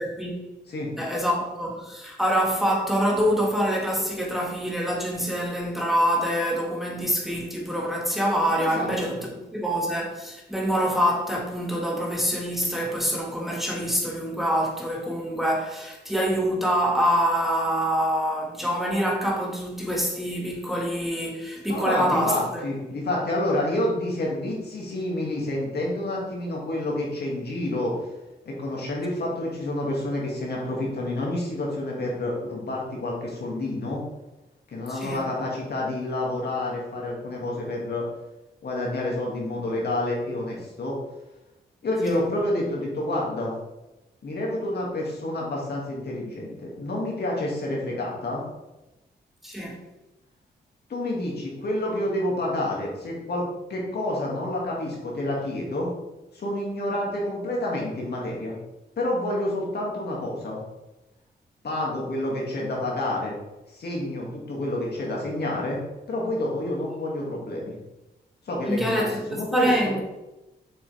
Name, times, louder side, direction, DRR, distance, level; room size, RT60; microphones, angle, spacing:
voice 1, 1.0-22.6 34.9-35.2 42.1-42.2 49.4-49.8 68.7-70.0, equal, ahead, 1.8 m, -25 dB
voice 2, 8.6-9.2 21.7-27.9 28.5-34.0 34.7-38.1 38.6-41.0 41.8-43.5 44.2-48.4 50.9-55.9 56.3-58.6 59.0-60.6 61.6-63.4 63.7-65.8 66.1-67.7 68.5-69.9, left 1 dB, 65° left, 2.4 m, -28 dB
7.1 x 5.8 x 3.5 m
cardioid pair, 70°, 18 cm